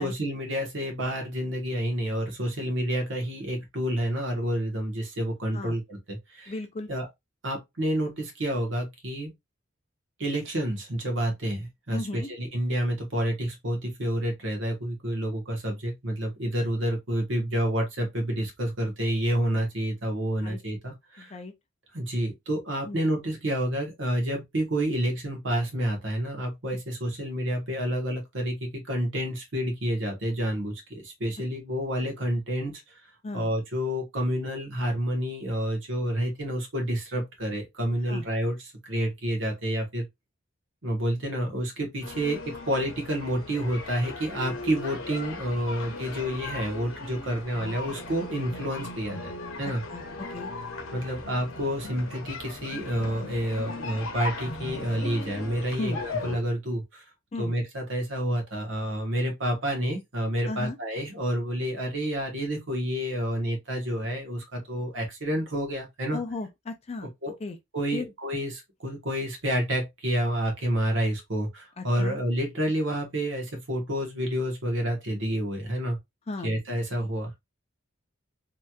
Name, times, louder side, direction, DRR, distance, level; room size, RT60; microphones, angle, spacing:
voice 1, 0.0-6.5 6.9-7.1 7.4-9.3 10.2-21.4 21.9-32.7 33.3-40.1 40.8-42.4 42.7-49.3 49.6-49.8 50.9-57.0 57.4-66.2 67.2-67.3 67.7-76.0 76.4-77.4, right 1 dB, 60° right, 1.2 m, -29 dB
voice 2, 6.5-6.9 11.9-12.3 20.4-20.6 21.2-21.5 22.9-23.0 33.2-33.5 38.1-38.2 49.9-50.5 55.8-56.0 57.3-57.5 60.5-60.8 66.1-67.1 67.4-67.6 67.9-68.1 71.8-72.2 76.3-76.5, left 2 dB, 30° left, 0.4 m, -35 dB
sound 1, 42.0-56.4, left 3 dB, 75° left, 0.9 m, -38 dB
3.2 x 2.9 x 2.3 m
head